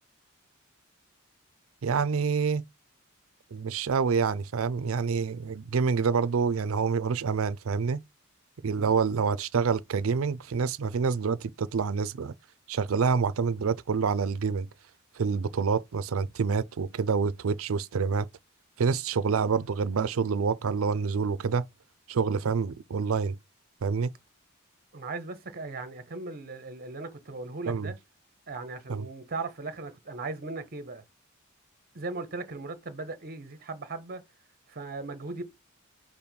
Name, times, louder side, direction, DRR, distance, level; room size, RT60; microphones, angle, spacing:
voice 1, 1.8-2.6 3.5-8.0 8.6-12.3 12.7-14.7 15.2-18.3 18.8-21.7 22.1-23.4 23.8-24.1 27.7-27.9 28.9-29.1, right 5 dB, 75° right, 0.4 m, -27 dB
voice 2, 8.7-9.0 24.9-28.0 28.5-31.0 31.9-34.2 34.7-35.4, right 3 dB, 45° right, 0.8 m, -38 dB
5.2 x 2.1 x 4.5 m
head